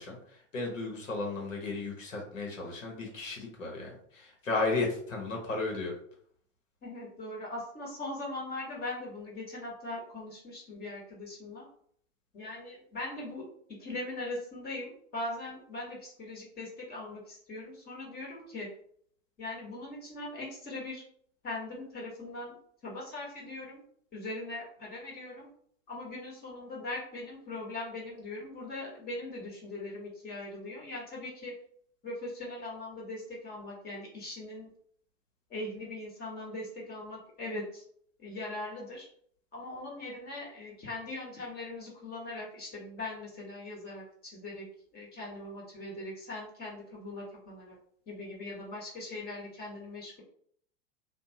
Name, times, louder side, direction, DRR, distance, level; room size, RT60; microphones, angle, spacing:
voice 1, 0.0-6.0, left 3 dB, 85° left, -1 dB, 1.0 m, -34 dB
voice 2, 6.8-11.7 12.3-13.5 13.8-18.7 19.4-21.0 21.4-22.5 22.8-23.8 24.1-25.5 25.9-31.5 32.0-34.7 35.5-37.8 38.2-39.1 39.5-44.6 44.9-47.8 48.1-50.2, left 2 dB, 25° left, -4 dB, 1.0 m, -40 dB
2.7 x 2.2 x 2.7 m, 0.63 s
figure-of-eight pair, 90°, 38 cm